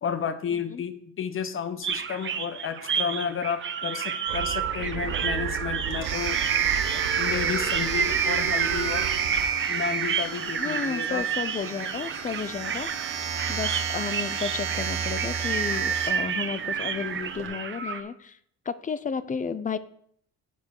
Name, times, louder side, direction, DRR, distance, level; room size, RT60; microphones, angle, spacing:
voice 1, 0.0-6.4 6.9-9.1 9.7-11.2, left 7 dB, 40° left, 12 dB, 0.9 m, -32 dB
voice 2, 0.5-0.8 10.6-13.2 13.5-18.4 18.7-19.8, left 6 dB, 25° left, 16 dB, 0.5 m, -33 dB
sound 1, 1.8-18.0, right 7 dB, 40° right, 0.9 m, -29 dB
sound 2, 4.3-9.5, right 11 dB, 80° right, 0.6 m, -35 dB
Domestic sounds home sounds, 5.0-17.5, right 6 dB, 55° right, 1.7 m, -33 dB
8.1 x 4.8 x 6.5 m, 0.65 s
cardioid pair, 85°, 31 cm